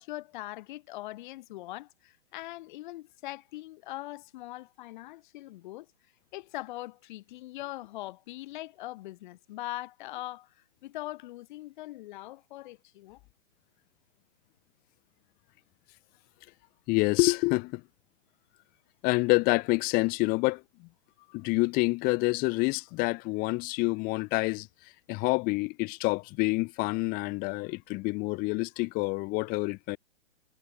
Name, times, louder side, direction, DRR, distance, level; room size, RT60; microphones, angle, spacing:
voice 1, 0.0-5.9 6.3-10.5 10.8-13.2, left 17 dB, 40° left, 3.4 m, -41 dB
voice 2, 16.9-17.8 19.0-20.9 21.3-24.7 25.1-30.0, left 25 dB, 25° left, 1.5 m, -27 dB
hypercardioid pair, 140°, 37 cm